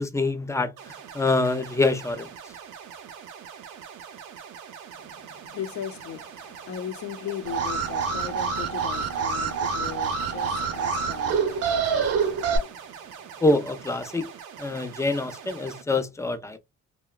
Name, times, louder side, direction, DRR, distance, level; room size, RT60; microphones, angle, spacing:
voice 1, 0.0-2.3 13.4-14.3 14.6-16.6, left 2 dB, 10° left, 0.4 m, -25 dB
sound 1, 0.8-15.8, right 8 dB, 90° right, 0.6 m, -43 dB
voice 2, 4.9-13.4, left 9 dB, 70° left, 0.7 m, -38 dB
Alarm, 7.4-12.6, right 6 dB, 50° right, 0.7 m, -26 dB
2.8 x 2.2 x 2.2 m
cardioid pair, 90°, 30 cm